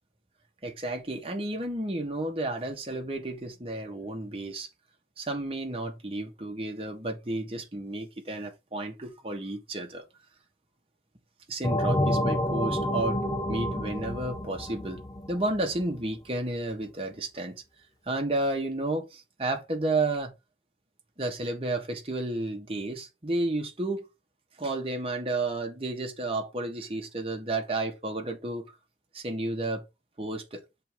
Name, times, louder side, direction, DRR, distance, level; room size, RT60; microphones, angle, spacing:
voice 1, 0.6-4.7 5.2-10.1 11.5-13.2 13.5-15.0 15.3-17.6 18.0-20.3 21.2-24.0 24.6-28.7 29.1-29.8 30.2-30.6, right 2 dB, 30° right, 1.4 m, -32 dB
sound 1, 11.6-16.0, left 1 dB, 20° left, 0.6 m, -29 dB
6.8 x 3.5 x 4.5 m
head